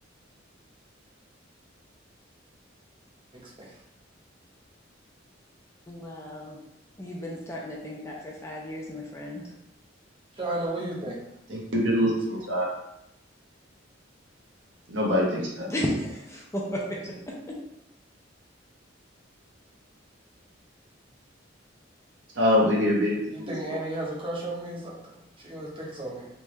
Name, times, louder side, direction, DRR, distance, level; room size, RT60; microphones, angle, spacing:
voice 1, 3.4-3.7 10.4-11.2 23.3-26.3, right 1 dB, 30° right, -4 dB, 1.0 m, -34 dB
voice 2, 5.9-6.6 7.0-9.5 15.7-17.6, equal, 15° left, -3 dB, 0.6 m, -34 dB
voice 3, 11.5-12.7 14.9-15.7 22.4-23.8, left 1 dB, 65° right, -4 dB, 1.2 m, -24 dB
3.5 x 3.0 x 3.2 m, 0.83 s
head